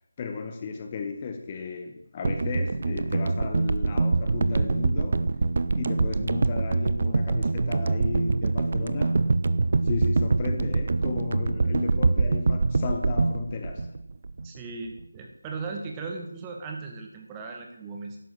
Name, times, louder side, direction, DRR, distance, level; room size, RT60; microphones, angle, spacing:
voice 1, 0.2-5.4 5.7-9.3 9.8-14.0, left 4 dB, 20° left, 5 dB, 1.1 m, -34 dB
sound 1, 2.2-14.6 14.9-15.0, right 3 dB, 40° right, 0.6 m, -25 dB
voice 2, 14.4-18.2, right 4 dB, 15° right, 2 dB, 1.5 m, -37 dB
11.5 x 9.7 x 7.5 m, 0.80 s
figure-of-eight pair, 160°, 0 cm